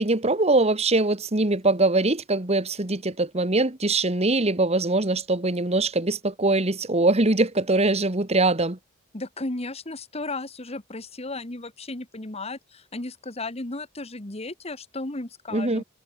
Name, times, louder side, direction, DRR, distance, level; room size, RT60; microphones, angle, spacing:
voice 1, 0.0-8.8 15.5-15.8, right 2 dB, 30° right, 1.7 m, -22 dB
voice 2, 9.1-15.8, left 2 dB, 30° left, 1.7 m, -34 dB
head